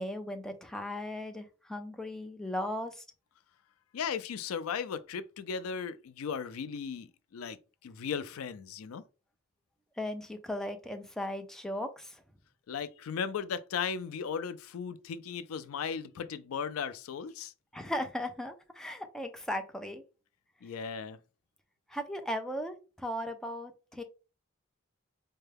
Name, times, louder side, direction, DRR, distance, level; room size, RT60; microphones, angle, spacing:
voice 1, 0.0-3.0 10.0-12.2 17.7-20.0 21.9-24.0, left 1 dB, ahead, 0.5 m, -37 dB
voice 2, 3.9-7.6 7.8-9.0 12.7-17.5 20.6-21.2, left 6 dB, 80° left, 0.4 m, -36 dB
4.4 x 2.2 x 3.3 m
head